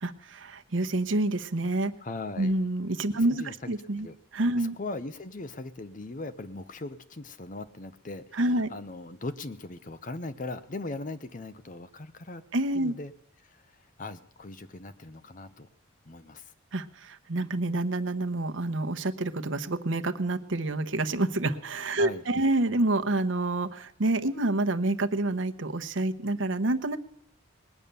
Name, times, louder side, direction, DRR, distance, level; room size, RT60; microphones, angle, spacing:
voice 1, 0.0-1.9 2.4-4.1 4.3-4.7 8.3-8.7 12.5-12.9 16.7-27.0, right 2 dB, 75° right, 8 dB, 0.9 m, -28 dB
voice 2, 2.0-2.5 3.2-3.7 4.0-4.2 4.5-12.4 12.7-13.1 13.4-15.7 16.1-16.5 21.9-22.2, left 2 dB, 40° left, 12 dB, 0.8 m, -39 dB
20.0 x 9.1 x 6.8 m, 0.64 s
head